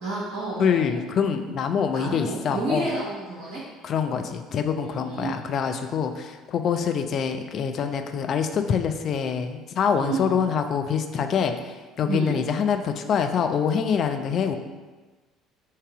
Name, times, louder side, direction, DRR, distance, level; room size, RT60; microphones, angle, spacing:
voice 1, 0.0-1.0 1.9-3.6 4.8-5.3 9.9-10.3 12.1-12.4, right 2 dB, 55° right, -8 dB, 0.9 m, -30 dB
voice 2, 0.6-2.9 3.8-11.5 12.0-14.5, left 7 dB, 45° left, 6 dB, 0.4 m, -25 dB
3.7 x 2.7 x 4.7 m, 1.3 s
figure-of-eight pair, 55°, 0 cm